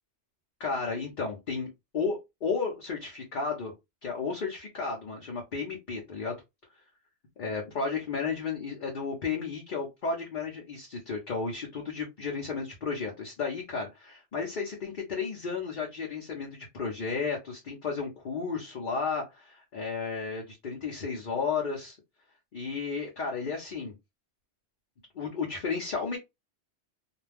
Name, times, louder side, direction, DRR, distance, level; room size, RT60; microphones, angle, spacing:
voice 1, 0.6-3.7 4.0-6.4 7.4-22.0 22.5-23.9 25.1-26.2, left 5 dB, 50° left, 0 dB, 0.8 m, -33 dB
2.4 x 2.2 x 3.3 m, 0.21 s
omnidirectional pair, 1.2 m